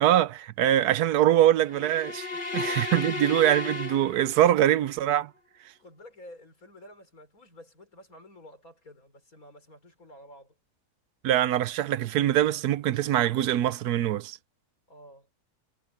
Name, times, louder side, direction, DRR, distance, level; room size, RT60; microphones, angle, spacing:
voice 1, 0.0-2.3 2.5-5.3 11.2-14.4, right 12 dB, 85° right, 1.2 m, -23 dB
sound 1, 1.7-4.7, left 3 dB, 30° left, 2.2 m, -34 dB
voice 2, 2.3-3.1 5.8-10.6 14.9-15.3, left 1 dB, 65° left, 5.6 m, -51 dB
omnidirectional pair, 1.6 m